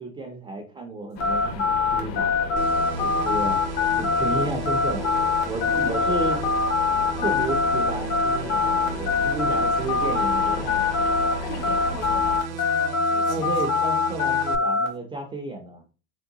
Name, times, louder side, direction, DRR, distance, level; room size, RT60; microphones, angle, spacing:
voice 1, 0.0-2.3 3.0-3.6 3.9-5.1 5.5-6.4 7.2-10.9 13.3-15.8, right 2 dB, 15° right, 0.3 m, -32 dB
sound 1, 1.2-11.3 11.6-14.9, left 4 dB, 90° left, 0.9 m, -23 dB
sound 2, 1.2-12.4, left 6 dB, 55° left, 0.8 m, -35 dB
sound 3, 2.6-14.6, right 7 dB, 60° right, 0.6 m, -35 dB
voice 2, 5.7-6.4 7.1-7.4 9.5-10.2 11.4-13.7, left 2 dB, 75° left, 1.7 m, -39 dB
3.6 x 2.3 x 2.7 m
hypercardioid pair, 105°, 41 cm